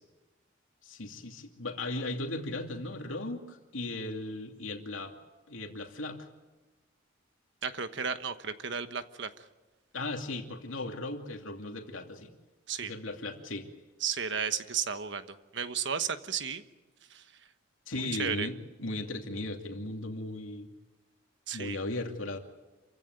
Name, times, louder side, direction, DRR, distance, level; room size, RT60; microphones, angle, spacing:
voice 1, 0.8-5.1 5.5-6.2 9.9-12.3 12.8-13.7 17.9-20.7 21.5-22.4, left 2 dB, 85° left, 3 dB, 2.7 m, -37 dB
voice 2, 7.6-9.3 12.7-12.9 14.0-16.6 17.1-17.2 18.0-18.5 21.5-21.8, right 7 dB, 65° right, 10 dB, 1.3 m, -33 dB
27.5 x 16.0 x 9.4 m, 1.1 s
head